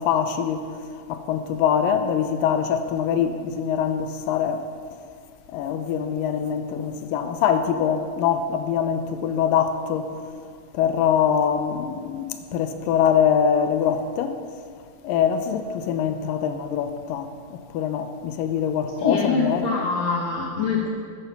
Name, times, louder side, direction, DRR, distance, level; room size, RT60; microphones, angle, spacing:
voice 1, 0.0-4.7 5.5-10.1 10.7-14.4 15.0-19.7, left 8 dB, 80° left, 2.1 m, -24 dB
voice 2, 19.0-20.9, left 4 dB, 65° left, 1.8 m, -24 dB
13.5 x 8.2 x 5.4 m
omnidirectional pair, 4.4 m